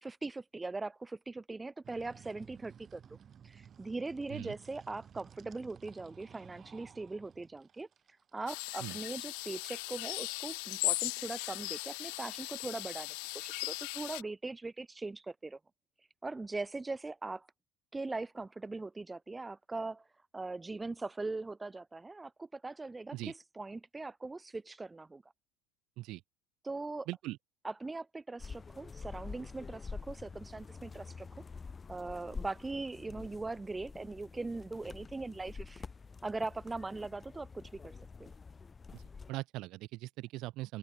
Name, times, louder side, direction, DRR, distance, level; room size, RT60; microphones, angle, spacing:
voice 1, 0.0-3.0 3.4-7.9 8.3-15.6 16.2-17.5 17.9-20.0 20.3-25.2 26.6-27.1 27.6-31.3 31.9-35.8 36.2-37.9 38.2-38.3, right 3 dB, 15° right, 1.2 m, -40 dB
sound 1, 1.8-13.4, right 8 dB, 35° right, 5.4 m, -57 dB
sound 2, 8.5-14.2, left 40 dB or more, 80° left, 0.3 m, -38 dB
sound 3, 28.4-39.3, left 5 dB, 20° left, 0.7 m, -47 dB
voice 2, 39.3-40.8, right 18 dB, 65° right, 0.7 m, -40 dB
open air
supercardioid pair, 110°, 0 cm